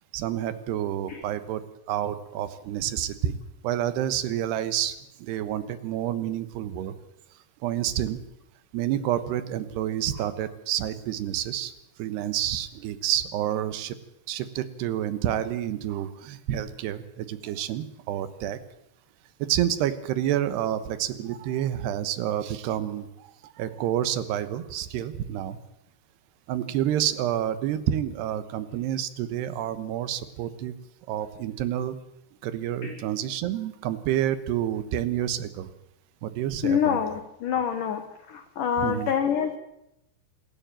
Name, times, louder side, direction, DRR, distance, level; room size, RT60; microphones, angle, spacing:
voice 1, 0.1-1.6 1.9-3.4 3.6-6.9 7.6-8.2 8.7-11.7 12.0-14.0 14.3-18.6 19.4-23.3 23.6-25.6 26.5-30.7 31.1-31.9 32.4-35.7 36.2-37.0 38.8-39.1, right 11 dB, 75° right, 13 dB, 3.0 m, -29 dB
voice 2, 36.6-38.0 38.3-39.6, left 8 dB, 60° left, 6 dB, 2.3 m, -26 dB
26.0 x 14.0 x 9.0 m, 0.83 s
omnidirectional pair, 5.4 m